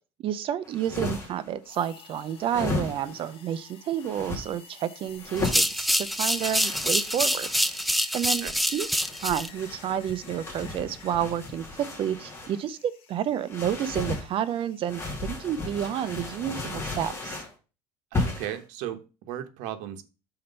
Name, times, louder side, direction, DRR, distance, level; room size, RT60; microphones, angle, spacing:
voice 1, 0.2-7.5 8.1-8.5 8.7-17.4, right 10 dB, 45° right, 0.6 m, -30 dB
sound 1, 0.6-1.5 2.4-3.3 4.0-4.4 5.2-5.7 6.4-7.8 8.8-12.6 13.5-14.3 14.9-17.5 18.1-18.6, left 2 dB, 20° left, 2.5 m, -35 dB
sound 2, 1.6-17.4, left 6 dB, 50° left, 1.6 m, -52 dB
sound 3, 5.4-9.5, equal, ahead, 0.3 m, -26 dB
voice 2, 18.1-20.0, right 11 dB, 80° right, 1.1 m, -36 dB
5.8 x 4.4 x 5.3 m
cardioid pair, 135°, 12 cm